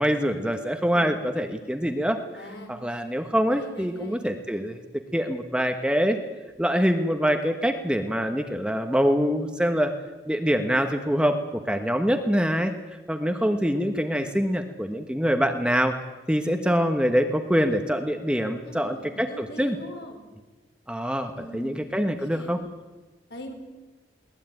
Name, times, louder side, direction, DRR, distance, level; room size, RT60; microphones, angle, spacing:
voice 1, 0.0-2.2 2.7-4.8 5.1-6.2 6.6-9.9 10.3-12.7 13.1-15.9 16.3-19.8 20.9-22.6, equal, 5° right, 6 dB, 1.2 m, -24 dB
voice 2, 2.3-2.7 3.5-4.3 18.6-20.2 21.3-22.6 23.3-23.5, left 1 dB, 70° left, 3 dB, 4.7 m, -42 dB
22.0 x 18.5 x 9.1 m, 1.2 s
head